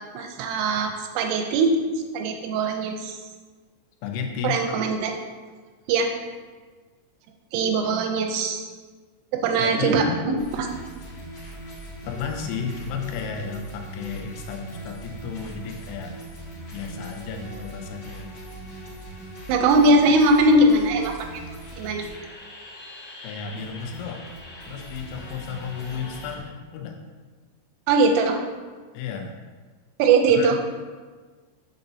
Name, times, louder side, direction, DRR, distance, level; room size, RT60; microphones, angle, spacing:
voice 1, 0.1-1.8 2.1-3.2 4.4-5.1 5.9-6.1 7.5-8.7 9.3-10.7 19.5-21.4 21.7-22.0 27.9-28.4 30.0-30.6, right 2 dB, 85° right, 4 dB, 3.0 m, -21 dB
voice 2, 4.0-4.6 9.6-10.2 12.1-16.1 16.7-18.3 23.2-24.2 24.7-27.0 28.9-29.4 30.3-30.5, left 6 dB, 85° left, 3 dB, 3.3 m, -33 dB
sound 1, 10.4-26.4, right 1 dB, 60° left, 1.5 m, -40 dB
8.3 x 6.7 x 2.7 m, 1.4 s
omnidirectional pair, 5.8 m